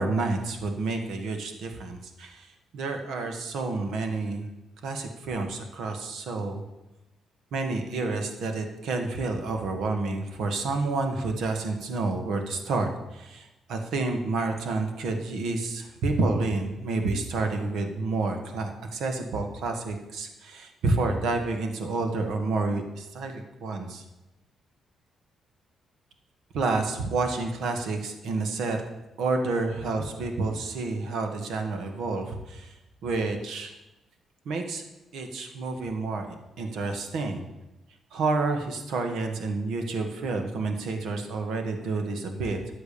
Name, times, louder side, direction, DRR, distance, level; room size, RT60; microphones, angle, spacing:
voice 1, 0.0-2.5 2.7-4.5 4.8-6.6 7.5-24.0 26.5-28.8 29.2-32.7 33.0-33.8 34.4-34.8 35.1-37.4 38.1-42.6, right 3 dB, 80° right, 5 dB, 1.7 m, -29 dB
11.0 x 8.2 x 6.9 m, 0.99 s
cardioid pair, 80°, 0 cm